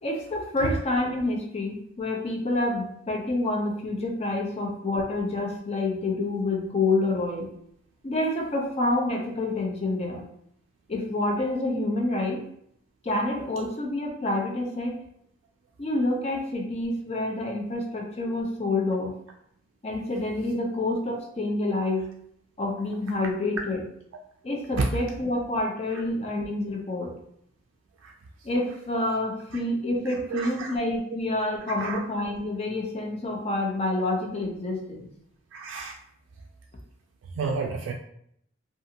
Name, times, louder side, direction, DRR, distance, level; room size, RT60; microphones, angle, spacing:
voice 1, 0.0-7.5 8.0-10.2 10.9-12.4 13.0-15.0 15.8-19.1 19.8-22.1 22.6-23.8 24.4-27.1 28.4-35.1, left 2 dB, 35° left, 0 dB, 0.5 m, -28 dB
voice 2, 30.3-30.7 31.8-32.0 35.5-35.9 37.3-37.9, right 4 dB, 85° right, 1 dB, 0.3 m, -29 dB
2.6 x 2.4 x 2.7 m, 0.70 s
head